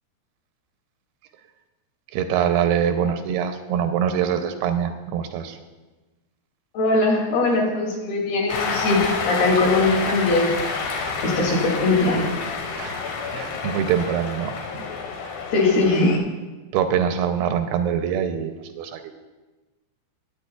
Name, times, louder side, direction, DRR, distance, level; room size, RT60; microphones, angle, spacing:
voice 1, 2.1-5.6 12.8-13.0 13.3-14.9 16.7-19.1, right 8 dB, 80° right, 7 dB, 2.5 m, -24 dB
voice 2, 6.7-10.5 11.2-12.3 15.5-16.2, left 2 dB, 70° left, -3 dB, 4.4 m, -20 dB
Cheering, 8.5-16.2, left 5 dB, 85° left, 3.3 m, -29 dB
20.0 x 8.8 x 2.3 m, 1.2 s
omnidirectional pair, 4.6 m